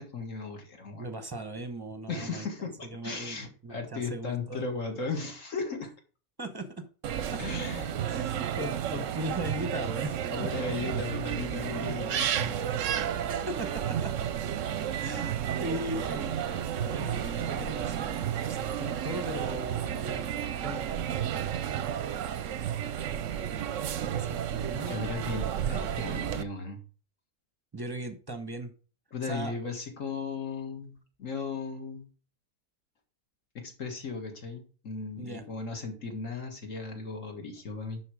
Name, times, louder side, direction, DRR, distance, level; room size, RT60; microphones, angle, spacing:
voice 1, 0.0-1.1 2.1-5.9 7.4-8.0 10.3-12.5 16.7-16.9 23.7-23.8 24.7-26.8 29.1-32.1 33.5-38.0, left 4 dB, 55° left, 3 dB, 2.1 m, -36 dB
voice 2, 1.0-5.0 6.4-6.9 7.3-7.4 8.1-10.5 12.7-13.2 13.5-14.1 15.0-21.0 24.0-25.3 25.6-26.2 27.7-28.7 29.2-29.5 35.2-35.4, right 1 dB, 20° right, 8 dB, 0.9 m, -39 dB
sound 1, 7.0-26.4, right 9 dB, 65° right, 0.9 m, -32 dB
11.0 x 4.7 x 4.9 m, 0.39 s
omnidirectional pair, 1.6 m